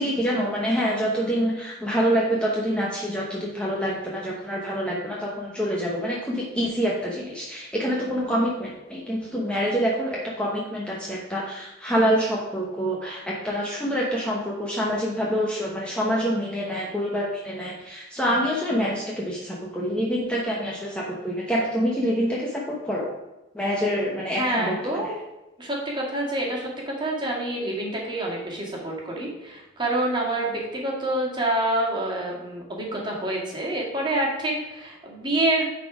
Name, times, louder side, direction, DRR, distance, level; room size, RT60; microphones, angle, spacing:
voice 1, 0.0-23.1 23.5-25.1, equal, 5° left, -4 dB, 0.9 m, -26 dB
voice 2, 24.4-25.2 25.6-35.7, right 1 dB, 25° right, -2 dB, 1.9 m, -27 dB
9.6 x 4.2 x 4.9 m, 1.0 s
head